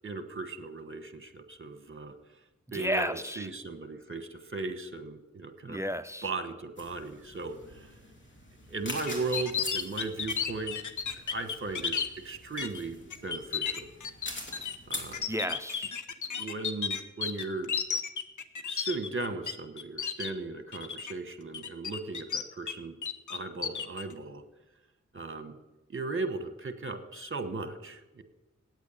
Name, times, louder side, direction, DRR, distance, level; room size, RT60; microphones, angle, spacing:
voice 1, 0.0-2.1 2.7-5.8 6.2-7.9 8.7-10.7 11.1-11.9 12.2-13.9 14.9-15.2 16.3-17.7 18.6-22.9 23.3-24.4 25.1-25.5 25.9-28.2, right 3 dB, 45° right, 10 dB, 1.2 m, -37 dB
voice 2, 2.7-3.5 5.7-6.3 15.3-15.9, equal, 10° right, 13 dB, 0.5 m, -32 dB
sound 1, 6.8-15.1, left 1 dB, 40° left, 2.8 m, -45 dB
sound 2, 9.1-12.1 12.6-12.8 13.1-19.5 19.8-20.3 20.7-21.1 21.5-22.7 23.0-24.0, left 6 dB, 85° left, 0.7 m, -33 dB
9.2 x 8.3 x 8.3 m, 1.0 s
cardioid pair, 45°, 29 cm